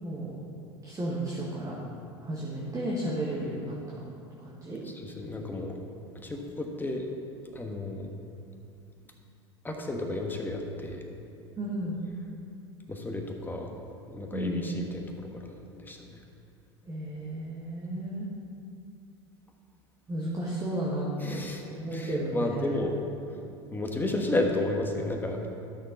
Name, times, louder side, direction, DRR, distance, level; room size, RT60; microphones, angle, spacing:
voice 1, 0.0-0.3 0.8-1.8 2.2-4.0 4.4-4.8 11.6-12.0 14.3-14.7 16.9-18.3 20.1-21.4 21.7-22.8, right 1 dB, 25° right, -5 dB, 1.7 m, -33 dB
voice 2, 4.8-5.8 6.2-7.1 7.5-8.1 9.6-11.0 12.9-13.7 14.1-16.2 21.2-21.6 21.9-22.9 23.7-25.4, left 2 dB, 15° left, 2 dB, 1.3 m, -32 dB
12.0 x 6.4 x 4.1 m, 2.6 s
hypercardioid pair, 80°, 15 cm